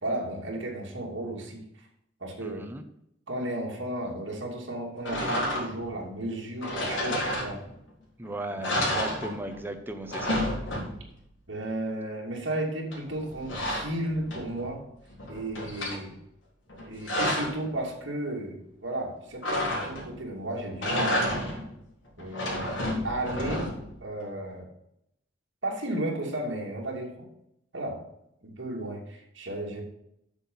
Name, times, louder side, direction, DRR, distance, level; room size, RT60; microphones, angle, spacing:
voice 1, 0.0-1.7 2.2-2.7 3.3-7.6 8.5-8.8 11.5-14.8 15.3-16.2 16.9-21.3 22.2-22.8 23.0-23.7 24.0-24.7 25.6-27.3 27.7-28.1 28.4-29.8, right 1 dB, 70° right, -2 dB, 2.7 m, -34 dB
voice 2, 2.4-2.8 8.2-10.4, right 1 dB, 10° right, 5 dB, 0.9 m, -37 dB
sound 1, 5.0-5.9 6.6-7.9 8.2-8.3 8.6-9.7 9.9-11.2 12.9-14.7 15.1-16.0 16.7-17.6 19.4-20.2 20.7-21.7 22.2-24.0, left 1 dB, 80° left, 3.7 m, -30 dB
8.1 x 6.8 x 5.6 m, 0.77 s
head